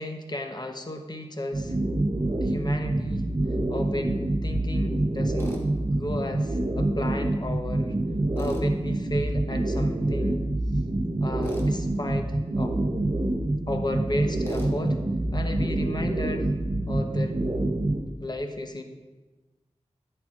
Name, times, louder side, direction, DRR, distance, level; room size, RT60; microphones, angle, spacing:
voice 1, 0.0-1.7 2.4-3.2 3.7-5.6 5.9-7.9 8.4-10.4 11.2-12.7 13.7-15.0 15.3-16.5 16.9-17.4 18.2-18.8, left 1 dB, 35° left, 5 dB, 0.9 m, -34 dB
sound 1, 1.5-18.0, right 1 dB, 40° right, 0.9 m, -26 dB
Tools, 5.4-5.6 8.4-8.7 11.4-11.7 14.4-14.7, equal, 20° left, 1.4 m, -42 dB
9.8 x 8.2 x 2.5 m, 1.2 s
cardioid pair, 45°, 12 cm